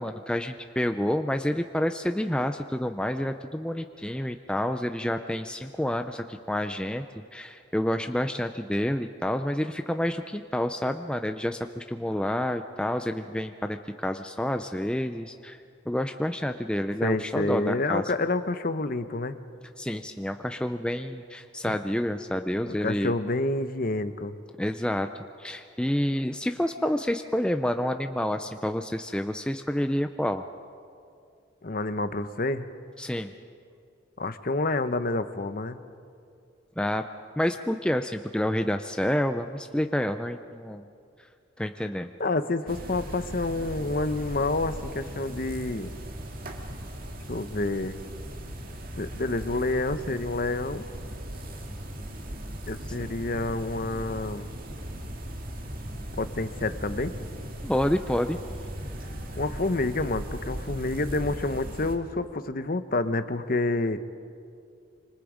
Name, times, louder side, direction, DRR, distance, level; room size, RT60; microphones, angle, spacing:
voice 1, 0.0-7.0 7.3-18.0 19.8-23.1 24.6-30.4 33.0-33.3 36.8-37.1 37.4-40.8 41.6-42.1 57.6-58.4, left 1 dB, 5° left, 7 dB, 0.5 m, -29 dB
voice 2, 17.0-19.4 21.6-21.8 22.7-24.3 31.6-32.7 34.2-35.8 42.2-45.9 47.3-48.0 49.0-50.8 52.7-54.5 56.2-57.1 59.4-64.1, left 2 dB, 45° left, 11 dB, 0.8 m, -28 dB
sound 1, 42.7-62.0, equal, 45° right, 2.0 m, -38 dB
26.5 x 25.0 x 5.1 m, 2.4 s
head